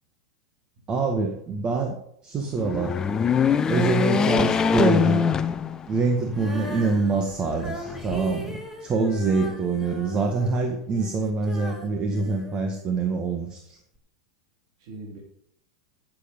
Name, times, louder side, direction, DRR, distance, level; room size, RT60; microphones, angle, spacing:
voice 1, 0.9-2.0 2.2-3.0 3.7-5.3 5.9-13.8, right 4 dB, 30° right, 4 dB, 1.9 m, -25 dB
sound 1, 2.5-6.1 6.6-6.7 7.8-8.6, left 6 dB, 20° left, 0.8 m, -23 dB
voice 2, 6.2-7.2 9.4-9.6 14.8-15.2, right 1 dB, 65° right, -2 dB, 3.3 m, -39 dB
Female singing, 6.3-13.3 13.9-14.0, right 1 dB, 5° right, 2.7 m, -39 dB
14.5 x 8.0 x 5.5 m, 0.72 s
supercardioid pair, 120°, 3 cm